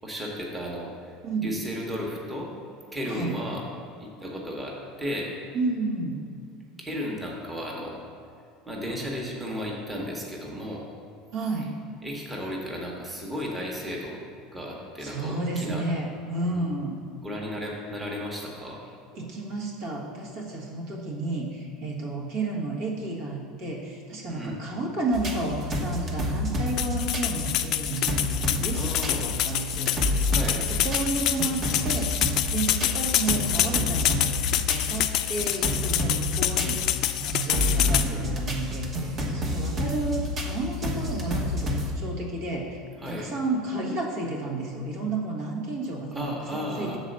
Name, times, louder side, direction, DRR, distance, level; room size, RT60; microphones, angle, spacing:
voice 1, 0.0-1.2 1.4-2.5 2.9-3.6 4.0-5.3 6.8-8.0 8.7-10.8 12.0-14.2 14.5-15.8 16.4-16.6 17.2-18.8 24.3-24.6 28.7-29.2 30.3-30.7 37.7-38.3 43.0-43.3 46.1-47.0, equal, 10° right, -2 dB, 1.1 m, -34 dB
voice 2, 1.2-1.5 3.1-3.4 5.5-6.2 11.3-11.8 15.0-17.0 19.1-30.2 30.5-32.2 32.5-34.3 34.7-36.8 37.2-47.0, right 2 dB, 70° right, -2 dB, 1.4 m, -31 dB
sound 1, 25.1-41.9, left 1 dB, 30° right, 1.0 m, -29 dB
sound 2, 26.8-38.1, left 12 dB, 50° left, 0.3 m, -27 dB
6.7 x 4.1 x 6.5 m, 2.4 s
supercardioid pair, 130°, 0 cm